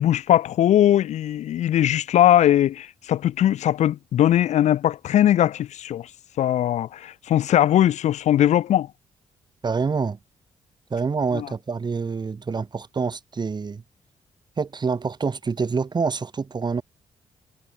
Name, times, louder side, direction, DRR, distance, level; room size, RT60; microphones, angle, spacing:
voice 1, 0.0-6.1 6.4-8.9 11.3-11.5, left 11 dB, 85° left, 1.5 m, -20 dB
voice 2, 9.6-10.2 10.9-13.8 14.6-16.8, right 5 dB, 40° right, 6.4 m, -26 dB
cardioid pair, 95°, 12 cm